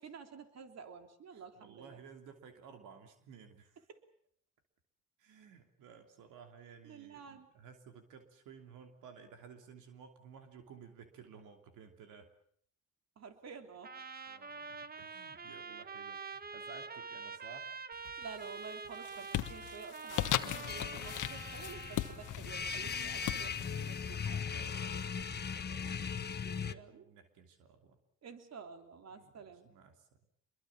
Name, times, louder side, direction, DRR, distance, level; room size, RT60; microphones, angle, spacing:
voice 1, 0.0-2.0 6.8-7.5 13.2-13.9 18.2-24.5 26.4-27.1 28.2-29.7, right 6 dB, 60° right, 6 dB, 3.3 m, -50 dB
voice 2, 1.3-3.8 5.2-12.3 14.3-17.7 24.5-28.0 29.1-30.1, right 6 dB, 85° right, 5 dB, 3.1 m, -56 dB
Trumpet, 13.8-22.4, right 5 dB, 30° right, 1.3 m, -46 dB
sound 1, 18.0-18.5 18.8-25.5, left 13 dB, 85° left, 1.3 m, -39 dB
sound 2, 20.7-26.7, left 6 dB, 35° left, 1.2 m, -39 dB
26.0 x 22.5 x 7.4 m, 0.62 s
cardioid pair, 90°, 30 cm